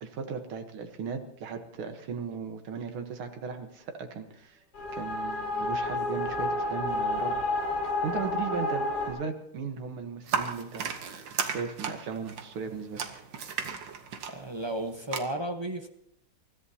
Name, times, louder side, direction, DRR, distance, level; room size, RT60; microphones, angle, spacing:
voice 1, 0.0-4.6 4.9-7.4 7.8-13.0, right 5 dB, 90° right, 6 dB, 2.2 m, -37 dB
sound 1, 4.7-9.1, left 2 dB, 55° left, 5.7 m, -30 dB
sound 2, 10.3-15.2, right 6 dB, 65° right, 1.9 m, -35 dB
voice 2, 14.3-15.9, right 1 dB, 30° right, 4 dB, 0.4 m, -33 dB
28.5 x 14.0 x 2.8 m, 0.75 s
omnidirectional pair, 2.3 m